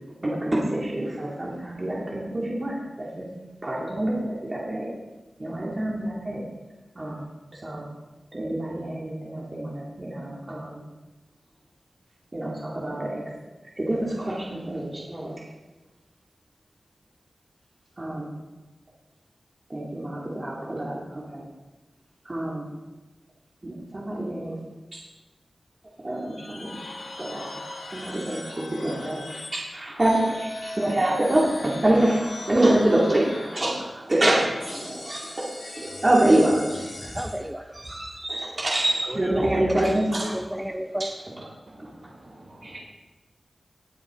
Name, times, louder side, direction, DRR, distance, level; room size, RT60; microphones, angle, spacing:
voice 1, 0.2-3.3 3.6-4.9 5.4-6.4 7.0-7.2 7.5-7.9 8.3-10.8 12.3-13.2 13.8-15.3 18.0-18.3 19.7-21.4 22.2-22.6 23.6-24.5 24.9-25.0 26.0-26.8 27.2-27.4 27.9-29.2 29.5-37.1 37.7-40.3 41.8-41.9 42.5-42.6, right 1 dB, 30° right, -5 dB, 2.2 m, -26 dB
sound 1, 26.2-29.6 30.0-34.0 34.6-37.4, left 2 dB, 85° left, 2.5 m, -39 dB
voice 2, 37.0-38.0 39.0-41.1, right 1 dB, 10° right, 4 dB, 0.6 m, -33 dB
voice 3, 41.7-42.8, right 2 dB, 55° right, -3 dB, 4.7 m, -47 dB
18.5 x 8.4 x 3.6 m, 1.1 s
wide cardioid pair, 95°, 0 cm